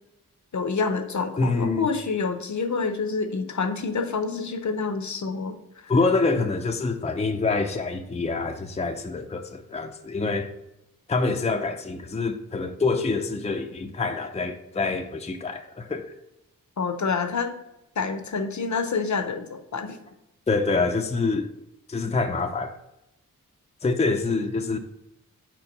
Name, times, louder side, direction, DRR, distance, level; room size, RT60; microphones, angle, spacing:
voice 1, 0.5-5.5 16.8-17.5 18.0-20.0, left 4 dB, 55° left, 0.8 m, -27 dB
voice 2, 1.4-1.9 5.9-10.5 11.1-16.1 20.5-21.5 21.9-22.8 23.8-24.8, left 3 dB, 20° left, 0.5 m, -26 dB
4.5 x 4.4 x 5.2 m
cardioid pair, 60°, 35 cm